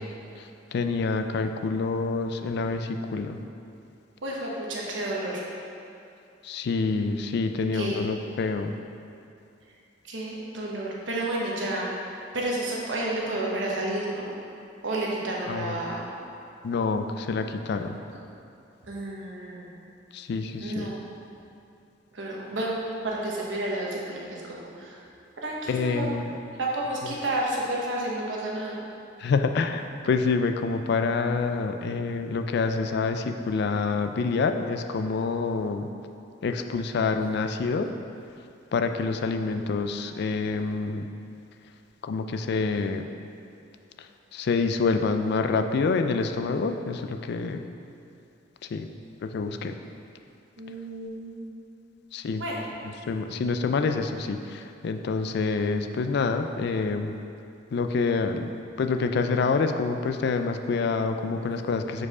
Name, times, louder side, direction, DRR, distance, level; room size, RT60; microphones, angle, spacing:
voice 1, 0.4-3.4 6.4-8.7 15.5-15.8 16.6-18.0 20.1-20.9 25.7-26.3 29.2-35.9 36.4-37.9 38.7-41.1 42.0-43.0 44.3-47.6 48.7-48.9 49.2-49.7 52.1-52.4 53.1-57.2 57.7-58.5 58.8-62.1, left 4 dB, 60° left, 7 dB, 0.3 m, -27 dB
voice 2, 4.2-5.4 7.7-8.0 10.1-12.0 12.3-14.3 14.8-16.0 18.1-18.2 18.8-19.7 20.6-20.9 22.1-25.0 25.4-26.1 26.6-28.8 50.6-51.5 52.4-52.6 61.4-61.7, right 1 dB, 80° right, -3 dB, 1.1 m, -31 dB
4.7 x 4.7 x 4.8 m, 2.7 s
head